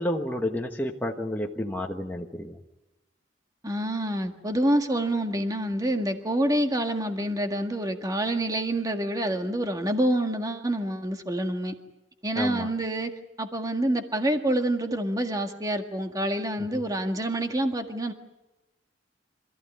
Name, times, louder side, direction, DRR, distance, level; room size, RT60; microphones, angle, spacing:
voice 1, 0.0-2.6 12.4-12.7 16.6-16.8, left 1 dB, 10° left, 0 dB, 1.3 m, -30 dB
voice 2, 3.6-11.7 12.2-13.1 13.4-18.1, right 1 dB, 20° right, 5 dB, 1.8 m, -27 dB
26.5 x 15.0 x 9.8 m, 1.0 s
head